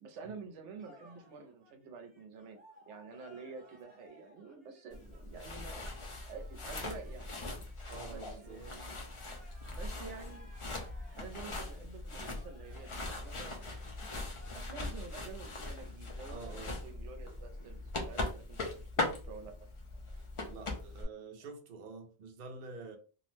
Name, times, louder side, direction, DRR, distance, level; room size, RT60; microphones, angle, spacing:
voice 1, 0.0-2.6 2.9-5.9 6.3-7.6 7.9-9.0 9.7-10.5 11.2-13.6 14.4-19.7, right 5 dB, 80° right, 0.9 m, -49 dB
sound 1, 0.8-14.9, equal, 10° right, 0.7 m, -61 dB
sound 2, 4.9-21.0, left 2 dB, 45° left, 0.4 m, -41 dB
voice 2, 7.9-8.6 16.3-16.8 20.4-23.0, right 4 dB, 55° right, 0.6 m, -47 dB
2.6 x 2.0 x 3.1 m
omnidirectional pair, 1.2 m